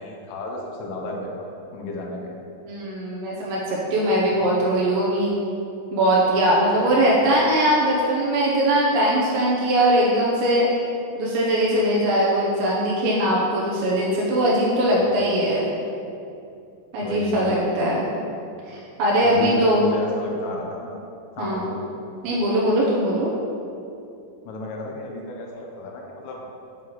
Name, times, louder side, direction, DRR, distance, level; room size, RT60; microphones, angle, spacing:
voice 1, 0.0-2.4 4.3-4.5 7.2-7.4 14.9-15.3 17.0-17.8 19.2-21.0 21.3-21.8 24.5-26.5, left 2 dB, 85° left, 0 dB, 3.3 m, -33 dB
voice 2, 2.6-5.3 5.9-10.7 11.2-15.7 16.9-18.1 18.7-19.9 21.4-21.6 22.2-23.3, right 1 dB, 80° right, -4 dB, 2.7 m, -21 dB
9.4 x 5.5 x 3.1 m, 2.6 s
omnidirectional pair, 5.8 m